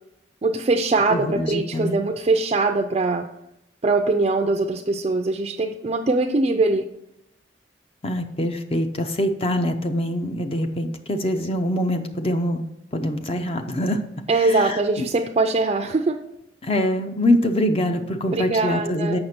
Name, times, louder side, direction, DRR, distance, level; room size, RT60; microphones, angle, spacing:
voice 1, 0.4-3.3 3.8-6.8 14.3-16.2 18.3-19.2, right 3 dB, 35° right, 5 dB, 0.4 m, -22 dB
voice 2, 1.1-2.0 8.0-12.6 12.9-14.0 14.3-15.1 16.6-19.2, left 1 dB, 30° left, 5 dB, 0.6 m, -24 dB
7.8 x 5.8 x 4.3 m, 0.85 s
head